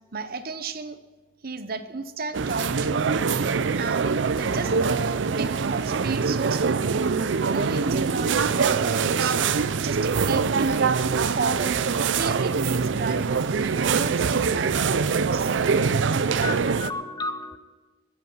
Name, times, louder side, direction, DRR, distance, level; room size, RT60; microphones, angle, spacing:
voice 1, 0.1-1.0 1.4-3.1 3.7-7.0 7.5-10.9 11.3-15.5, right 4 dB, 55° right, 11 dB, 0.8 m, -33 dB
sound 1, 2.3-16.9, right 5 dB, 75° right, 0.5 m, -24 dB
voice 2, 16.2-17.6, left 3 dB, 20° left, 11 dB, 0.6 m, -33 dB
21.5 x 8.3 x 5.6 m, 1.3 s
head